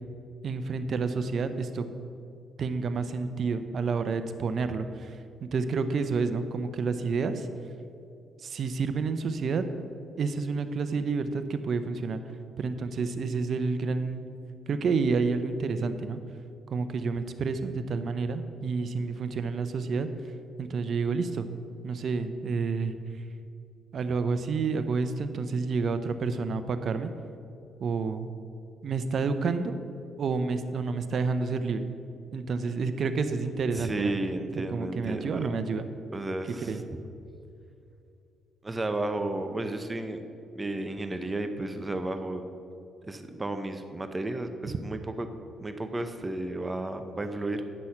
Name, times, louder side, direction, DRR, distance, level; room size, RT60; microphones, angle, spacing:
voice 1, 0.4-1.9 2.6-5.2 5.5-7.5 8.4-9.6 10.2-12.2 12.6-14.2 14.7-16.2 16.7-20.1 20.6-21.5 21.8-22.9 23.9-27.1 27.8-28.3 28.8-29.8 30.2-31.9 32.3-34.1 34.7-35.9 36.6-36.8, right 4 dB, 55° right, 10 dB, 0.7 m, -29 dB
voice 2, 33.7-35.5 36.1-37.0 38.6-40.3 40.5-42.4 43.0-45.3 45.6-47.6, right 2 dB, 20° right, 8 dB, 0.7 m, -33 dB
10.0 x 6.2 x 5.8 m, 2.6 s
cardioid pair, 90°, 0 cm